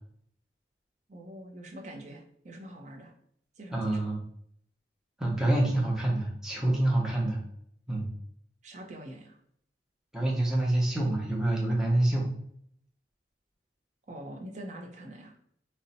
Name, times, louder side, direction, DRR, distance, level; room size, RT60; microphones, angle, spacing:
voice 1, 1.1-3.1 3.6-4.1 8.6-9.4 14.1-15.3, right 1 dB, 40° right, 2 dB, 0.5 m, -44 dB
voice 2, 3.7-4.2 5.2-7.4 7.9-8.1 10.1-12.3, right 1 dB, 5° right, -3 dB, 0.7 m, -26 dB
2.6 x 2.1 x 3.9 m, 0.67 s
head